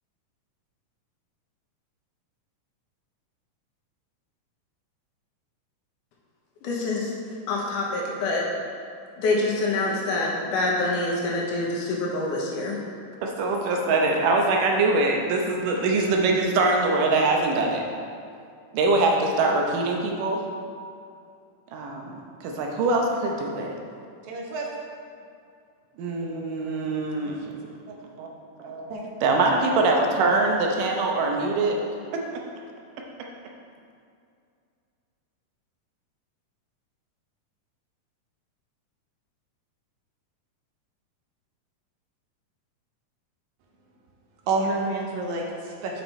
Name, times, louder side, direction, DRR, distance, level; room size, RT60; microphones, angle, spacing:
voice 1, 6.6-7.1 7.5-8.5 9.2-12.8, left 2 dB, 80° left, -3 dB, 2.6 m, -26 dB
voice 2, 13.2-17.8 18.7-20.4 21.7-23.7 26.0-27.6 27.9-28.3 28.6-28.9 29.2-31.8 32.3-32.4, right 3 dB, 90° right, 1 dB, 2.5 m, -23 dB
voice 3, 24.2-24.7 28.9-29.1 44.5-46.0, right 3 dB, 75° right, -1 dB, 2.0 m, -28 dB
7.3 x 5.8 x 4.2 m, 2.4 s
omnidirectional pair, 3.7 m